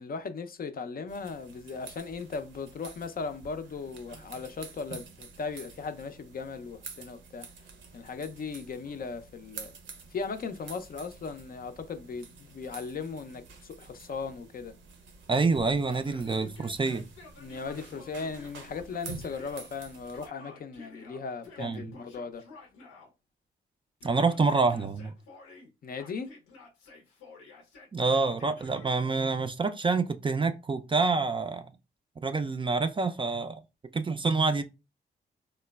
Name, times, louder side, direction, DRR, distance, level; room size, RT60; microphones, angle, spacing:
voice 1, 0.0-7.5 7.9-9.8 10.1-14.7 17.4-22.4 25.8-26.3, left 4 dB, 45° left, 0.4 m, -37 dB
sound 1, 1.1-20.3, right 5 dB, 65° right, 0.6 m, -48 dB
voice 2, 15.3-17.1 21.6-21.9 24.0-25.1 27.9-31.7 32.2-33.6 33.9-34.6, right 4 dB, 25° right, 0.3 m, -27 dB
Yell, 15.8-19.7 20.1-23.1 24.0-25.7 26.0-28.9, left 3 dB, 90° left, 0.6 m, -51 dB
3.0 x 2.0 x 2.2 m
supercardioid pair, 45°, 21 cm